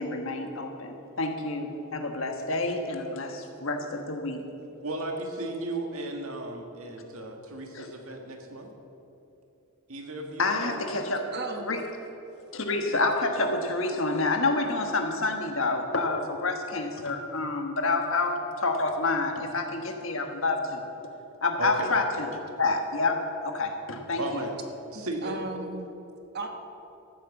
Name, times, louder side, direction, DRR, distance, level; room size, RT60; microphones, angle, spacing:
voice 1, 0.0-4.4 7.7-7.9 10.4-11.2 11.7-11.8 12.5-20.8 21.4-24.4, left 3 dB, 60° left, 4 dB, 1.4 m, -28 dB
voice 2, 4.8-8.7 9.9-10.9 21.6-21.9 24.2-24.5 24.9-25.4, right 2 dB, 75° right, 3 dB, 1.7 m, -35 dB
voice 3, 11.3-11.7 24.9-25.9 26.3-26.5, right 3 dB, 50° right, 5 dB, 1.2 m, -36 dB
14.0 x 8.9 x 7.1 m, 3.0 s
head